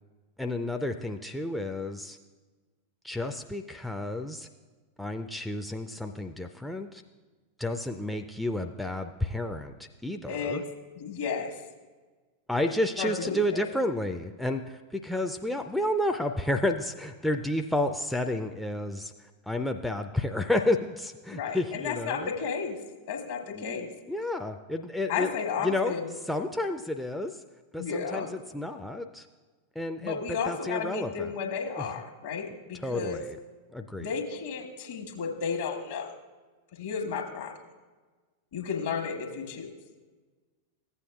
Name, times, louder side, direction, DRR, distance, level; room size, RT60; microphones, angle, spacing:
voice 1, 0.4-2.2 3.0-4.5 5.0-7.0 7.6-10.6 12.5-19.1 19.5-22.3 23.5-23.8 24.1-25.3 25.6-26.0 26.3-27.4 27.7-29.3 29.8-30.2 30.5-31.3 31.8-31.9 32.8-33.4 33.7-34.1, left 1 dB, ahead, 4 dB, 0.4 m, -31 dB
voice 2, 10.3-10.6 11.0-11.6 13.0-13.6 21.3-22.8 23.1-23.9 25.1-26.1 27.8-28.3 30.0-33.2 34.0-36.1 36.7-37.5 38.5-39.7, left 6 dB, 55° left, 3 dB, 1.2 m, -33 dB
15.0 x 8.3 x 2.3 m, 1.3 s
figure-of-eight pair, 90°, 0 cm